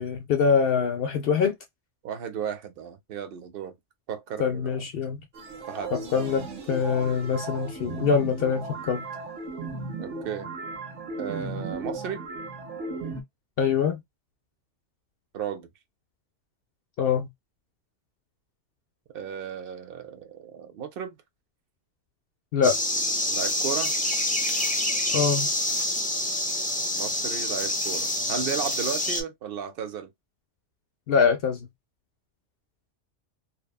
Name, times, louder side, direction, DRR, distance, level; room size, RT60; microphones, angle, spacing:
voice 1, 0.0-1.6 4.4-5.2 5.9-9.0 13.6-14.0 17.0-17.3 22.5-22.8 25.1-25.5 31.1-31.7, left 6 dB, 65° left, 0.7 m, -24 dB
voice 2, 2.0-3.7 4.1-4.8 5.7-5.9 10.0-10.5 11.2-12.2 15.3-15.7 19.1-21.2 23.3-23.9 26.9-30.1, right 7 dB, 60° right, 0.7 m, -34 dB
sound 1, 5.3-13.2, right 3 dB, 85° right, 1.2 m, -36 dB
sound 2, 22.6-29.2, left 1 dB, 10° left, 0.4 m, -27 dB
2.9 x 2.2 x 2.3 m
omnidirectional pair, 1.2 m